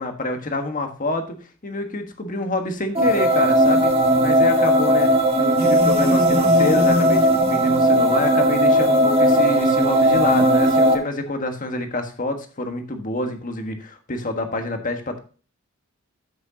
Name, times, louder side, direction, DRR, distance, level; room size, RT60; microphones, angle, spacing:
voice 1, 0.0-1.3 1.6-3.9 4.2-5.1 5.4-15.2, left 2 dB, 40° left, 5 dB, 1.5 m, -27 dB
sound 1, 2.9-10.9, equal, 30° right, 1.4 m, -17 dB
13.5 x 6.4 x 2.8 m, 0.37 s
head